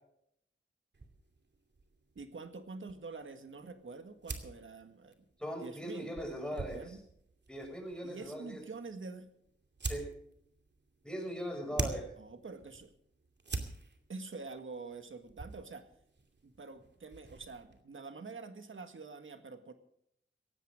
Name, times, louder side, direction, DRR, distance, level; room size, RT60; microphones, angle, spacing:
sound 1, 0.9-17.8, right 3 dB, 60° right, 2.6 m, -46 dB
voice 1, 2.2-5.3 5.6-7.0 8.0-9.3 11.7-11.9 12.2-12.9 14.1-15.9 16.4-19.7, right 4 dB, 80° right, 8 dB, 1.8 m, -46 dB
voice 2, 5.4-7.0 7.5-8.6 9.8-10.1 11.0-12.0, equal, 5° left, 2 dB, 6.5 m, -40 dB
18.0 x 15.5 x 3.7 m, 0.71 s
wide cardioid pair, 90°, 20 cm